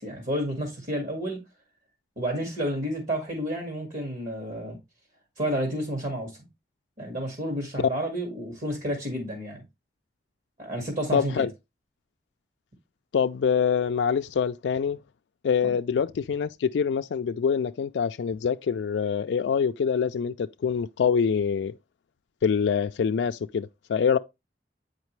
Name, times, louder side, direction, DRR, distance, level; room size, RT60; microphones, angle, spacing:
voice 1, 0.0-1.4 2.2-4.8 5.4-6.3 7.0-9.6 10.6-11.5 15.6-15.7, equal, 50° right, 2.0 m, -30 dB
voice 2, 11.1-11.5 13.1-15.0 15.4-21.7 22.4-24.2, left 6 dB, 90° left, 0.4 m, -25 dB
8.2 x 5.1 x 3.1 m
head